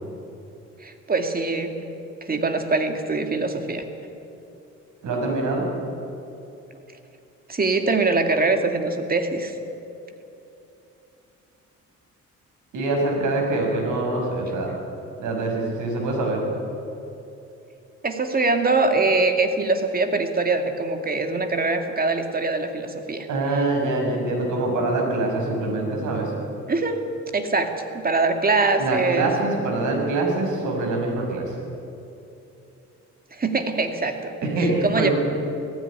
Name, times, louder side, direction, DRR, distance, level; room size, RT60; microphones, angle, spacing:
voice 1, 0.8-1.7 2.2-3.8 7.5-9.5 18.0-23.3 26.7-27.0 27.3-29.3 33.3-34.5 34.8-35.1, right 3 dB, 30° right, 6 dB, 2.4 m, -23 dB
voice 2, 5.0-5.6 12.7-14.7 15.2-16.4 23.3-26.3 28.8-31.5 34.4-35.1, right 2 dB, 80° right, 0 dB, 6.3 m, -24 dB
18.0 x 15.5 x 9.9 m, 2.8 s
cardioid pair, 90°, 30 cm